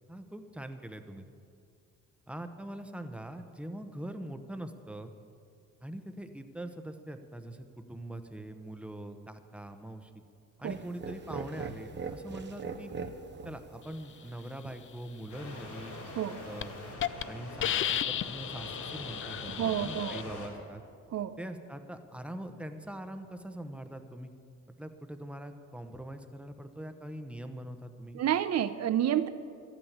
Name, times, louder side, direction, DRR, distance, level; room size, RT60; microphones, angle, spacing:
voice 1, 0.1-1.3 2.3-5.1 5.8-10.1 10.6-12.9 13.4-16.0 16.4-16.7 17.3-20.8 21.4-24.3 24.8-28.2, right 1 dB, 5° right, 7 dB, 1.0 m, -43 dB
sound 1, 10.6-16.9, right 5 dB, 35° right, 1.0 m, -43 dB
sound 2, 15.3-20.5, left 2 dB, 75° left, 4.5 m, -44 dB
Hiss, 16.0-16.2 16.6-16.7 17.0-17.2 17.6-20.2, left 10 dB, 45° left, 0.4 m, -33 dB
voice 2, 19.6-20.2 21.1-21.4 28.1-29.3, right 10 dB, 60° right, 13 dB, 0.7 m, -29 dB
12.5 x 9.1 x 8.1 m, 2.4 s
cardioid pair, 90°, 30 cm